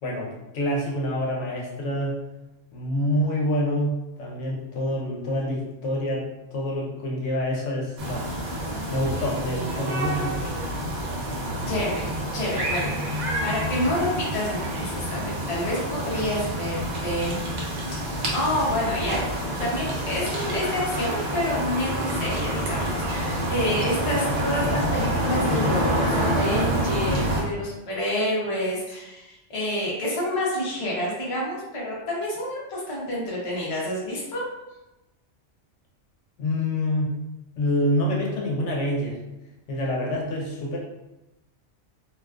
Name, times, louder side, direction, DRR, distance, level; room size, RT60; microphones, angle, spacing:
voice 1, 0.0-2.1 2.7-8.3 8.9-10.6 36.4-37.1 37.6-39.2 39.7-40.8, left 1 dB, 80° left, -2 dB, 0.9 m, -27 dB
sound 1, 8.0-27.4, right 1 dB, 55° right, 0.5 m, -27 dB
voice 2, 11.7-17.4 18.3-19.2 19.6-34.4, left 1 dB, 35° left, -5 dB, 0.6 m, -28 dB
2.3 x 2.3 x 2.3 m, 0.97 s
omnidirectional pair, 1.2 m